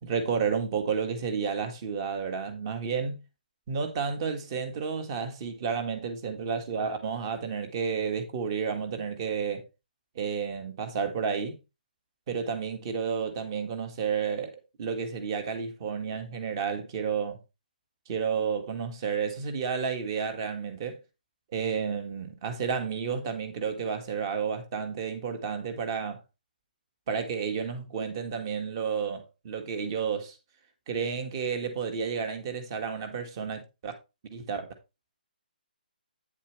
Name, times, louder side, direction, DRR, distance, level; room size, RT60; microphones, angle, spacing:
voice 1, 0.0-3.2 3.7-9.7 10.2-11.6 12.3-17.4 18.1-21.0 21.5-26.2 27.1-30.4 30.9-33.9 34.3-34.7, right 6 dB, 30° right, 1.7 m, -31 dB
9.3 x 7.1 x 3.2 m
hypercardioid pair, 165°, 5 cm